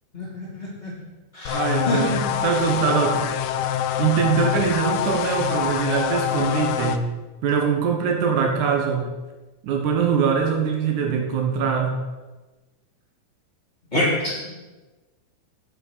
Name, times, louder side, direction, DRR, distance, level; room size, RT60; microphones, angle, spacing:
voice 1, 0.1-0.9 1.3-2.2 13.9-14.3, left 1 dB, 15° left, -8 dB, 3.8 m, -26 dB
sound 1, 1.5-7.0, left 9 dB, 75° left, 1.8 m, -25 dB
voice 2, 1.5-3.3 4.0-7.1 7.4-9.1 9.6-12.0, right 6 dB, 75° right, 3 dB, 2.6 m, -22 dB
9.9 x 7.8 x 6.8 m, 1.2 s
omnidirectional pair, 3.6 m